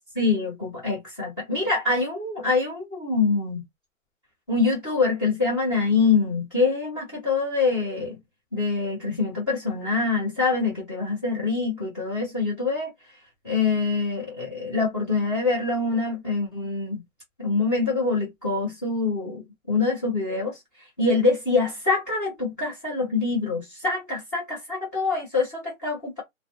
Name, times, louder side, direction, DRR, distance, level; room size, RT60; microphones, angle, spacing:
voice 1, 0.1-3.6 4.5-8.2 8.5-12.9 13.4-17.0 17.4-20.6 21.0-26.2, left 4 dB, 15° left, 0.6 m, -25 dB
2.4 x 2.2 x 2.6 m
hypercardioid pair, 155°, 41 cm